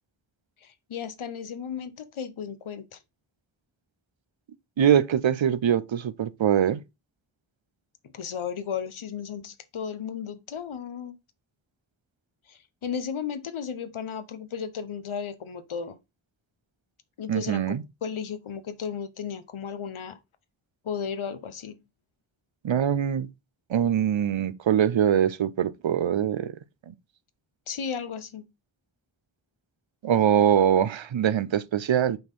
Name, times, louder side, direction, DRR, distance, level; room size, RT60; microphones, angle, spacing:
voice 1, 0.6-3.0 8.1-11.2 12.5-16.0 17.2-17.8 18.0-20.2 20.8-21.8 27.7-28.4, left 7 dB, 85° left, 1.0 m, -34 dB
voice 2, 4.8-6.8 17.3-17.8 22.6-23.3 23.7-26.5 30.0-32.2, right 9 dB, 70° right, 0.7 m, -23 dB
5.7 x 4.3 x 5.3 m
wide cardioid pair, 60°, 48 cm